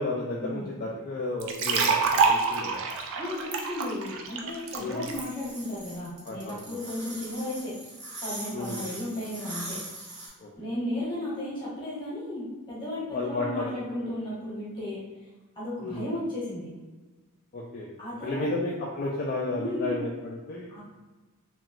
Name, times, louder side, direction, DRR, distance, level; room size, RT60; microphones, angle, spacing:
voice 1, 0.0-2.8 4.8-5.1 6.2-6.8 8.5-8.9 10.4-10.5 13.1-13.7 14.0-14.2 15.8-16.0 17.5-17.9 18.2-20.8, left 2 dB, 40° left, -3 dB, 0.3 m, -33 dB
sound 1, 1.4-5.2, right 5 dB, 60° right, 0.4 m, -26 dB
voice 2, 3.2-7.7 8.2-9.8 10.5-15.0 15.5-16.7 18.0-18.5 19.5-19.9 20.7-20.8, left 1 dB, 20° left, -10 dB, 1.1 m, -34 dB
sound 2, 5.1-10.3, right 2 dB, 90° right, 1.4 m, -40 dB
2.9 x 2.9 x 2.4 m, 1.2 s
head